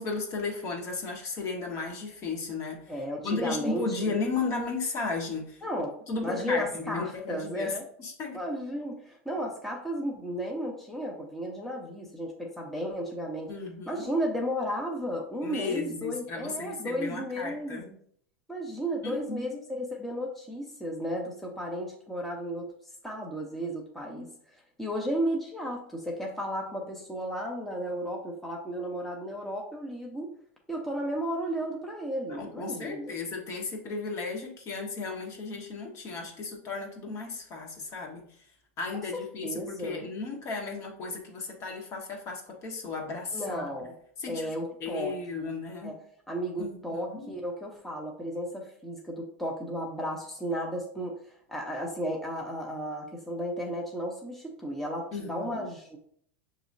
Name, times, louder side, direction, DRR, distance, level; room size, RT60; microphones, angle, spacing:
voice 1, 0.0-2.9 3.2-5.6 6.1-8.4 13.5-14.1 15.4-17.9 19.0-19.6 32.3-38.3 38.8-43.7 44.2-44.5 44.8-45.9 46.6-47.4 55.1-55.6, left 4 dB, 40° left, 0 dB, 1.4 m, -35 dB
voice 2, 2.9-4.0 5.6-7.8 8.3-13.5 13.9-18.0 18.5-22.7 23.0-30.3 30.7-33.1 38.9-40.1 43.3-43.9 44.3-45.5 45.8-46.0 46.3-51.2 51.5-56.0, equal, 5° left, -1 dB, 0.8 m, -34 dB
6.0 x 3.0 x 2.6 m, 0.62 s
hypercardioid pair, 105°, 7 cm